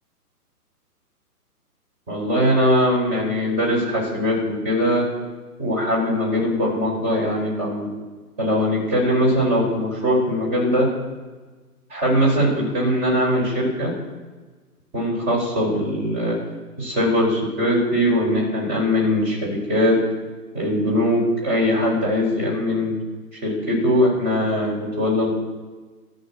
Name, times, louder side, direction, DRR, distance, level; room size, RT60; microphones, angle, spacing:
voice 1, 2.1-5.0 5.6-7.9 8.4-10.9 11.9-13.9 14.9-16.4 16.8-20.0 20.5-22.9 23.4-25.3, equal, 25° right, -4 dB, 5.6 m, -21 dB
14.5 x 7.8 x 7.7 m, 1.3 s
hypercardioid pair, 150°, 47 cm